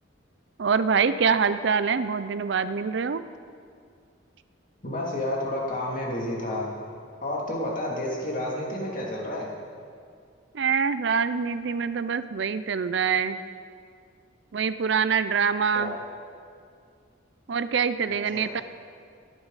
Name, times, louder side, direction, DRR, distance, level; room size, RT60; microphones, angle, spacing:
voice 1, 0.6-3.2 10.5-13.4 14.5-15.9 17.5-18.6, right 6 dB, 60° right, 12 dB, 0.5 m, -25 dB
voice 2, 4.8-6.7 7.2-9.5 15.7-16.0 18.1-18.5, left 1 dB, 45° left, -3 dB, 2.7 m, -30 dB
23.0 x 10.5 x 4.1 m, 2.2 s
head